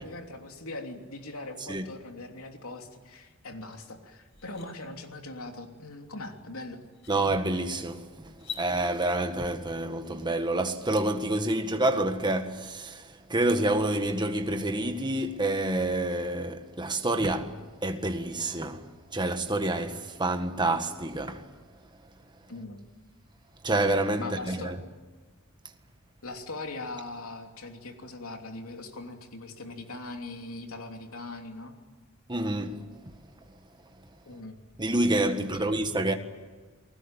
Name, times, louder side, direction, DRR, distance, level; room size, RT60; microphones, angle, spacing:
voice 1, 0.0-6.8 22.5-22.8 24.2-24.8 26.2-31.7 34.3-34.6 35.4-35.8, left 2 dB, 90° left, 3.1 m, -41 dB
sound 1, 3.7-3.8 4.2-4.7 6.3-6.4 6.9-7.2 8.3-8.7, left 7 dB, 60° left, 5.8 m, -41 dB
voice 2, 7.1-18.8 19.1-21.4 23.6-24.8 32.3-32.9 34.8-36.1, right 2 dB, 20° right, 1.6 m, -28 dB
29.5 x 20.0 x 9.1 m
head